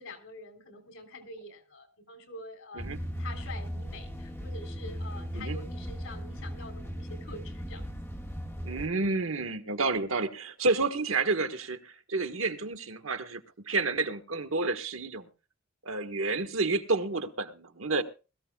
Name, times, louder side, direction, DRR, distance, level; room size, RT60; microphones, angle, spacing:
voice 1, 0.0-2.9 3.2-7.9, left 2 dB, 85° left, 4 dB, 3.5 m, -46 dB
sound 1, 2.8-8.9, equal, 10° left, 1.7 m, -37 dB
voice 2, 8.6-13.4 13.7-15.3 15.8-18.0, right 3 dB, 80° right, 8 dB, 1.3 m, -30 dB
21.5 x 14.0 x 2.3 m, 0.33 s
head